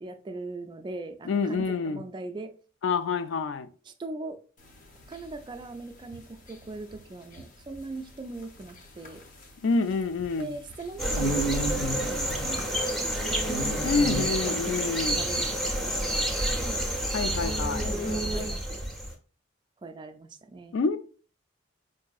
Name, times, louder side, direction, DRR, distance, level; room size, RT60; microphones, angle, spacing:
voice 1, 0.0-2.5 3.9-4.4 5.1-9.2 10.4-12.2 12.6-16.8 17.9-18.8 19.8-20.8, right 3 dB, 25° right, 0.3 m, -41 dB
voice 2, 1.2-2.0 2.8-3.7 9.6-10.5 13.8-15.2 17.1-17.9 20.7-21.0, left 4 dB, 70° left, 0.4 m, -27 dB
sound 1, 4.6-18.8, right 1 dB, 45° left, 0.7 m, -36 dB
sound 2, 11.0-19.1, right 1 dB, ahead, 0.7 m, -29 dB
4.7 x 2.6 x 2.3 m
head